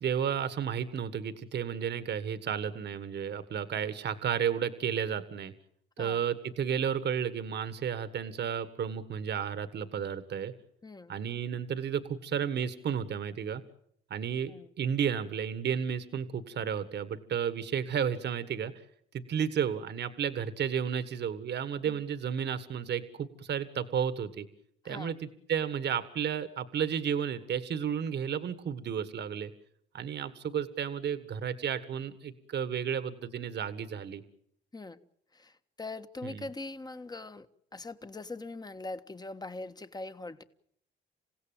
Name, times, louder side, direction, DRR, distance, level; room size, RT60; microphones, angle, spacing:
voice 1, 0.0-5.5 6.0-10.5 11.1-13.6 14.1-18.7 19.1-24.5 24.8-29.5 29.9-34.2 36.2-36.5, right 8 dB, 60° right, 12 dB, 1.6 m, -32 dB
voice 2, 10.8-11.2 14.5-14.7 21.9-22.0 24.8-25.1 34.7-35.0 35.3-37.5 37.7-40.4, left 2 dB, 20° left, 11 dB, 1.4 m, -42 dB
28.0 x 16.5 x 9.0 m, 0.70 s
cardioid pair, 90°, 20 cm